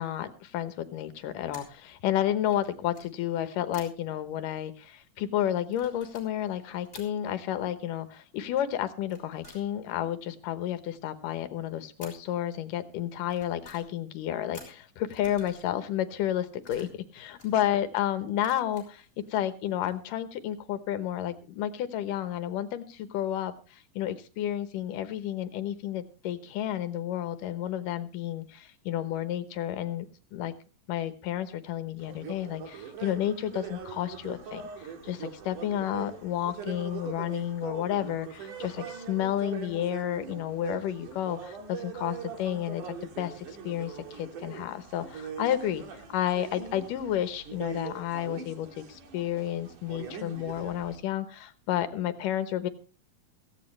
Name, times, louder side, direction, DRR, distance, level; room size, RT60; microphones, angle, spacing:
voice 1, 0.0-19.0 19.3-30.1 30.3-30.5 30.9-45.8 46.1-52.7, left 11 dB, 80° left, 11 dB, 2.7 m, -31 dB
sound 1, 1.1-1.8 2.4-3.1 3.7-4.1 5.6-7.1 9.0-10.0 12.0-12.3 13.1-14.0 14.5-15.7 16.2-17.7 18.4-19.3 19.6-20.0, left 2 dB, 15° left, 4.5 m, -52 dB
sound 2, 32.0-51.0, right 6 dB, 70° right, 3.5 m, -42 dB
17.0 x 15.0 x 3.2 m, 0.33 s
omnidirectional pair, 3.8 m